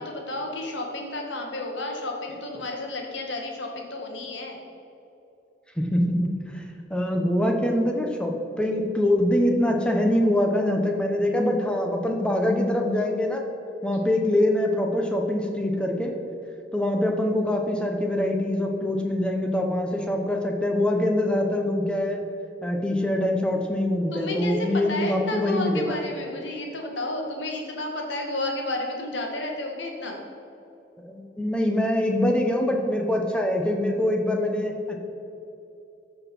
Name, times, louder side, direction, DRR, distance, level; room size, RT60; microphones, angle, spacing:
voice 1, 0.0-4.6 13.9-14.0 24.1-30.2, left 2 dB, 75° left, 1 dB, 1.9 m, -31 dB
voice 2, 5.8-6.6 6.9-13.4 13.8-16.1 16.7-22.2 22.6-26.0 31.0-35.0, left 1 dB, 5° left, 2 dB, 1.1 m, -24 dB
13.5 x 6.1 x 5.5 m, 2.9 s
head